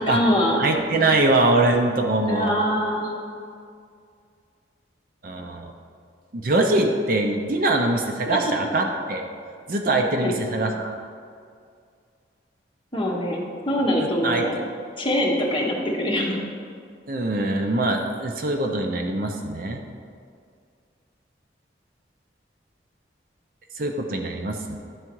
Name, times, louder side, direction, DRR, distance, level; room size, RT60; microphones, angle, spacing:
voice 1, 0.0-0.6 2.3-3.1 10.2-10.4 12.9-14.6 15.0-16.4, equal, 25° left, -3 dB, 1.0 m, -23 dB
voice 2, 0.6-2.6 5.2-5.7 6.3-9.2 9.7-11.0 14.2-14.5 17.1-19.8 23.8-24.8, right 2 dB, 50° right, 3 dB, 0.5 m, -23 dB
10.0 x 3.6 x 4.6 m, 2.2 s
head